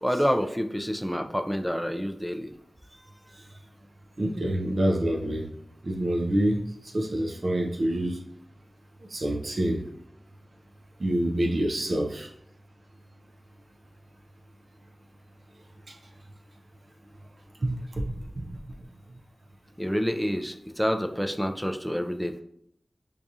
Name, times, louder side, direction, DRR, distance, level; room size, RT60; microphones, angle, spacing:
voice 1, 0.0-2.5 19.8-22.4, equal, ahead, 7 dB, 0.4 m, -28 dB
voice 2, 4.2-5.5 5.8-6.6 6.9-8.2 9.1-9.8 11.0-12.3 15.9-16.0 17.6-18.6, right 1 dB, 60° right, 1 dB, 0.4 m, -27 dB
4.7 x 2.4 x 2.7 m, 0.71 s
wide cardioid pair, 55°, 0 cm